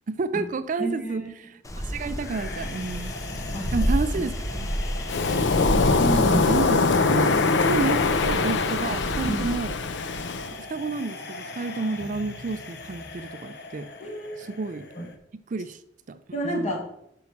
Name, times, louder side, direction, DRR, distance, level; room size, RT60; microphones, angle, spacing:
voice 1, 0.1-1.5 1.8-3.2 3.7-4.7 6.3-9.7 10.7-13.9 14.4-14.8 15.5-15.8 16.1-16.2 16.4-16.8, right 4 dB, 45° right, 13 dB, 0.4 m, -30 dB
voice 2, 0.8-1.3 3.5-3.7 5.7-6.5 7.8-7.9 9.3-9.5 14.0-14.5 14.9-15.1 16.3-16.8, right 1 dB, 40° left, 1 dB, 2.0 m, -29 dB
Wind, 1.6-9.5, equal, 20° left, 0.8 m, -31 dB
sound 1, 2.2-15.2, left 3 dB, 65° left, 0.9 m, -40 dB
Waves surf, 5.1-10.5, left 4 dB, 85° left, 0.5 m, -23 dB
5.9 x 5.3 x 5.9 m, 0.75 s
head